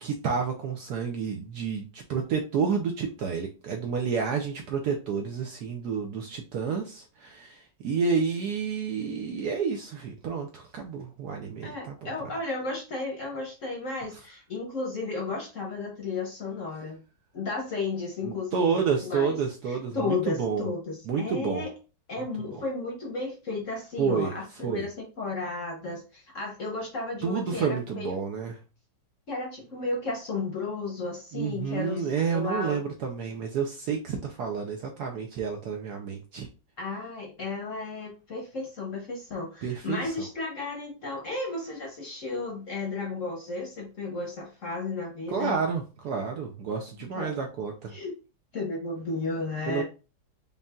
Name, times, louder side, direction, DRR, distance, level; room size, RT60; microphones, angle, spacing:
voice 1, 0.0-12.1 18.2-20.7 21.1-21.6 24.0-24.3 24.6-24.9 27.2-28.6 31.3-36.5 39.6-40.3 45.3-47.9 49.7-49.8, right 6 dB, 70° right, 3 dB, 1.0 m, -30 dB
voice 2, 11.6-17.0 17.3-19.4 19.7-21.7 22.1-28.2 29.3-32.8 36.8-45.6 47.1-47.4 47.9-48.2 48.5-49.8, left 3 dB, 55° left, 0 dB, 1.0 m, -33 dB
5.3 x 2.7 x 2.3 m, 0.32 s
omnidirectional pair, 2.2 m